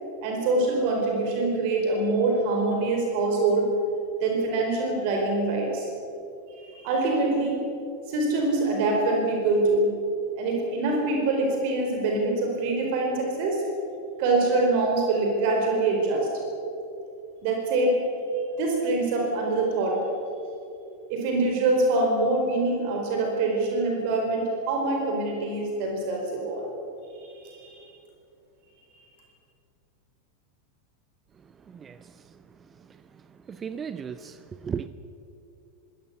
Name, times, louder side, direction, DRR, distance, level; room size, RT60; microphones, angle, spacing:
voice 1, 0.2-3.7 4.2-5.9 6.6-7.6 8.1-9.9 10.4-13.6 14.2-16.3 17.4-18.0 18.6-20.0 21.1-26.7 27.2-27.8, right 2 dB, 45° right, 1 dB, 4.5 m, -24 dB
voice 2, 33.5-34.4 34.6-34.9, right 7 dB, 20° right, 13 dB, 0.7 m, -34 dB
24.5 x 18.0 x 7.1 m, 2.8 s
figure-of-eight pair, 90°, 0 cm